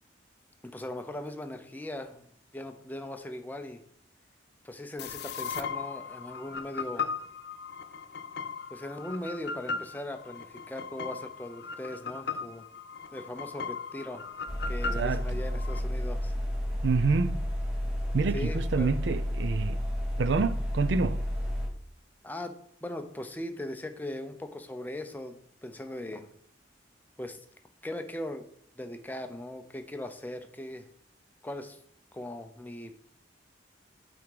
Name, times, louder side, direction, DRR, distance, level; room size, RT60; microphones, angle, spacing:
voice 1, 0.6-2.2 2.5-3.8 4.6-7.1 8.7-12.6 13.1-14.2 14.7-16.3 18.3-18.9 22.2-22.5 22.8-26.3 27.2-27.4 27.8-28.5 28.8-30.9 31.4-31.8 32.1-33.0, left 1 dB, 10° left, 0.6 m, -39 dB
sound 1, 5.0-15.8, left 5 dB, 60° left, 0.5 m, -38 dB
sound 2, 14.5-21.7, equal, 30° right, 2.4 m, -31 dB
voice 2, 15.0-15.4 16.8-17.4 18.1-19.8 20.2-21.2, right 4 dB, 70° right, 0.5 m, -27 dB
8.6 x 3.5 x 4.7 m
head